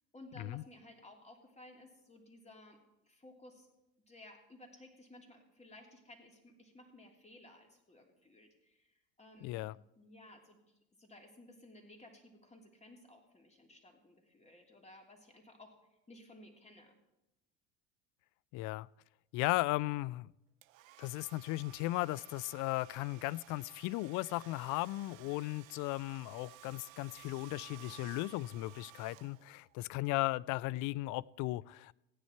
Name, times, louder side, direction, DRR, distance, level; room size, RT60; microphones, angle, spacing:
voice 1, 0.1-2.8 3.1-3.7 4.1-9.7 10.0-15.8 16.1-17.0, left 1 dB, 15° left, 2 dB, 2.9 m, -57 dB
voice 2, 9.4-9.8 18.5-18.9 19.3-20.3 21.0-31.9, left 19 dB, 50° left, 22 dB, 0.4 m, -36 dB
Domestic sounds home sounds, 20.6-29.8, right 15 dB, 80° right, 0.6 m, -56 dB
16.5 x 9.8 x 4.5 m, 0.91 s
hypercardioid pair, 70°, 40 cm